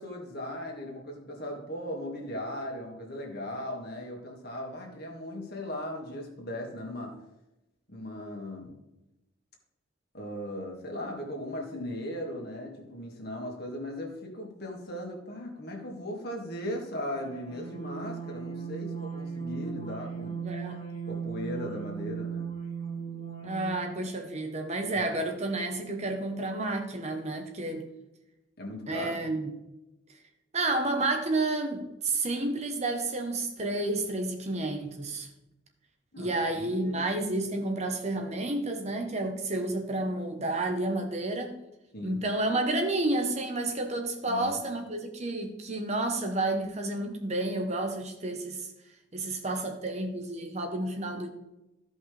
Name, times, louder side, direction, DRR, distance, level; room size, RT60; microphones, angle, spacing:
voice 1, 0.0-7.2 7.9-8.8 10.1-20.5 21.1-22.5 28.6-29.2 36.1-37.0 41.9-42.2 44.3-44.5, left 1 dB, 50° left, 0 dB, 2.0 m, -38 dB
sound 1, 17.1-23.9, right 6 dB, 35° left, 2.1 m, -37 dB
voice 2, 20.4-20.8 23.4-27.9 28.9-29.5 30.5-35.3 36.2-41.5 42.0-48.7 49.1-51.3, right 2 dB, 35° right, 4 dB, 1.0 m, -30 dB
14.5 x 5.4 x 3.3 m, 0.95 s
head